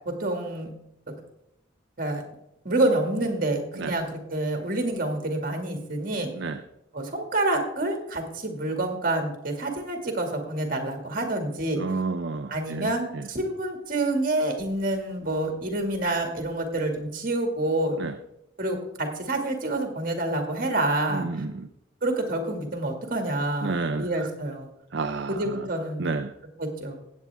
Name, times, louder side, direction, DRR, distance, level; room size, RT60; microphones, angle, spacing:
voice 1, 0.1-0.7 2.0-2.2 2.6-6.3 6.9-11.8 12.5-18.0 18.6-21.4 22.0-24.7 25.3-26.1 26.6-27.0, right 2 dB, 45° right, 3 dB, 2.2 m, -28 dB
voice 2, 11.8-13.3 18.0-18.1 21.1-21.7 23.6-24.3 24.9-25.7 26.0-26.3, right 3 dB, 60° right, 7 dB, 0.6 m, -31 dB
16.0 x 8.6 x 3.5 m, 0.81 s
head